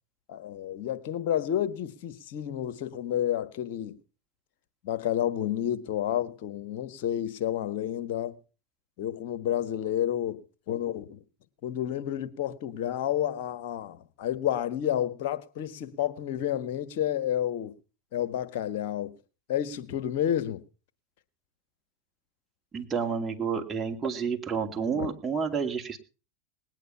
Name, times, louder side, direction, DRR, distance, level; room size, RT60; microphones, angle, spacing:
voice 1, 0.3-3.9 4.8-8.4 9.0-11.2 11.6-17.7 18.1-19.2 19.5-20.6 24.9-25.1, left 11 dB, 60° left, 1.4 m, -30 dB
voice 2, 22.7-26.0, right 6 dB, 20° right, 2.5 m, -30 dB
19.5 x 9.1 x 5.7 m
hypercardioid pair, 95°, 0 cm